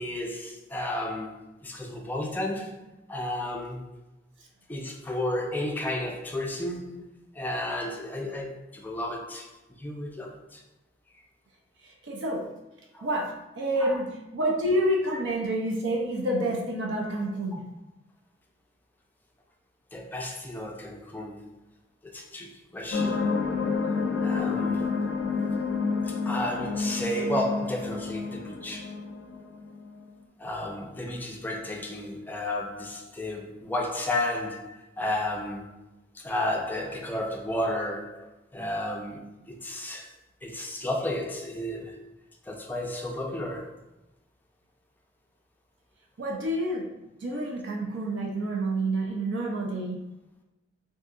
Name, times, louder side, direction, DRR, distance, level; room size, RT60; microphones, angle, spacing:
voice 1, 0.0-1.4 1.6-2.8 3.1-3.9 4.7-7.1 7.3-10.6 12.9-13.1 13.8-14.0 19.9-21.4 22.0-23.3 24.2-24.9 26.0-28.9 30.4-35.8 36.1-40.1 40.4-42.1 42.5-43.8, left 1 dB, 10° left, 0 dB, 0.4 m, -33 dB
voice 2, 11.8-12.5 13.0-17.6 46.2-46.9 47.2-50.0, right 1 dB, 75° right, -1 dB, 0.5 m, -28 dB
sound 1, 22.9-30.0, left 4 dB, 75° left, 0.4 m, -29 dB
2.7 x 2.4 x 3.6 m, 0.96 s
head